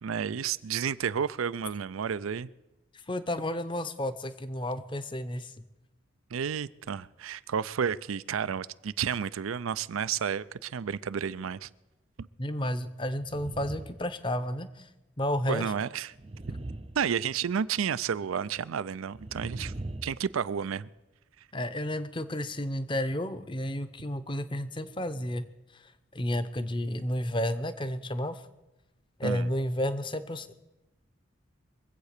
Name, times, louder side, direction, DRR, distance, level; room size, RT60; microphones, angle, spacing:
voice 1, 0.0-2.5 6.3-11.7 12.2-12.3 15.5-16.1 17.0-19.7 20.0-20.9 29.2-29.5, right 7 dB, 90° right, 17 dB, 0.5 m, -31 dB
voice 2, 3.1-5.5 12.4-14.7 15.2-15.7 21.5-25.4 26.1-28.4 29.2-30.5, left 1 dB, 25° left, 13 dB, 0.7 m, -31 dB
sound 1, 13.2-14.1 14.4-14.6 16.1-17.7 19.1-20.4, right 2 dB, 30° right, 0.5 m, -40 dB
23.0 x 8.1 x 6.6 m, 1.0 s
head